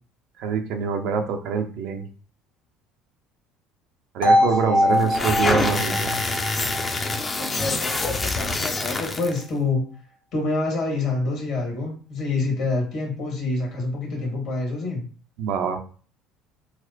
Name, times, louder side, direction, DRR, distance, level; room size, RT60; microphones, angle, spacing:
voice 1, 0.4-2.1 4.1-6.1 15.4-15.8, right 6 dB, 60° right, 6 dB, 0.5 m, -25 dB
sound 1, 4.2-8.2, left 1 dB, 80° left, 1.3 m, -23 dB
voice 2, 4.2-5.1 7.4-9.9 10.3-15.1, left 3 dB, 60° left, 0 dB, 1.6 m, -27 dB
sound 2, 5.0-9.4, left 3 dB, 25° left, 0.5 m, -26 dB
4.1 x 2.1 x 2.7 m, 0.40 s
hypercardioid pair, 65°, 0 cm